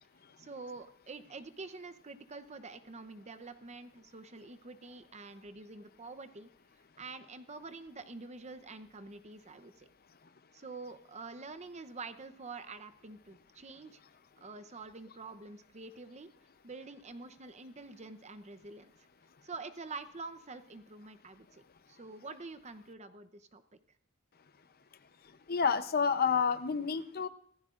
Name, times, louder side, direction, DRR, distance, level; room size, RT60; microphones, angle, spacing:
voice 1, 0.4-6.5 7.0-9.9 10.5-14.0 14.4-16.3 16.6-18.9 19.4-21.6 21.9-23.6, right 3 dB, 35° right, 11 dB, 0.8 m, -47 dB
voice 2, 25.5-27.3, left 6 dB, 45° left, 11 dB, 0.7 m, -29 dB
25.0 x 15.0 x 2.5 m, 0.65 s
head